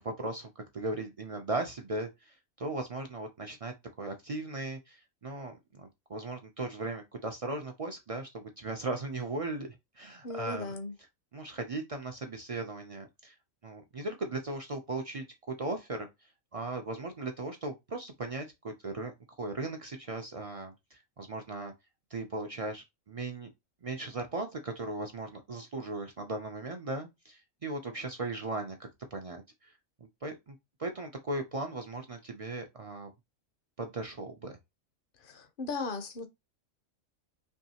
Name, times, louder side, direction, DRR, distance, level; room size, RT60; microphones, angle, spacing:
voice 1, 0.0-9.7 10.0-10.7 11.3-13.3 13.6-16.1 16.5-19.1 19.4-21.7 22.1-23.5 23.8-29.7 30.2-33.1 33.8-34.6, right 2 dB, 60° right, 0.3 m, -37 dB
voice 2, 10.2-10.9 35.2-36.3, left 3 dB, 50° left, 0.7 m, -37 dB
4.6 x 3.0 x 2.8 m
omnidirectional pair, 1.4 m